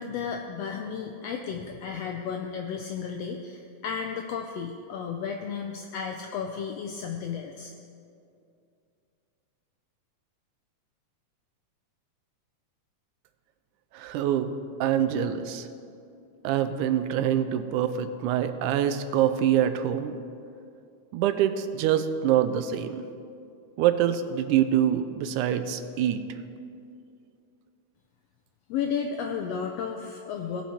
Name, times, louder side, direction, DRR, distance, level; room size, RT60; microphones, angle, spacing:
voice 1, 0.0-7.7 28.7-30.6, left 6 dB, 85° left, 3 dB, 1.4 m, -33 dB
voice 2, 13.9-15.7 16.4-20.1 21.1-23.0 23.8-26.2, right 10 dB, 90° right, 10 dB, 2.1 m, -25 dB
17.5 x 5.9 x 4.3 m, 2.5 s
omnidirectional pair, 3.5 m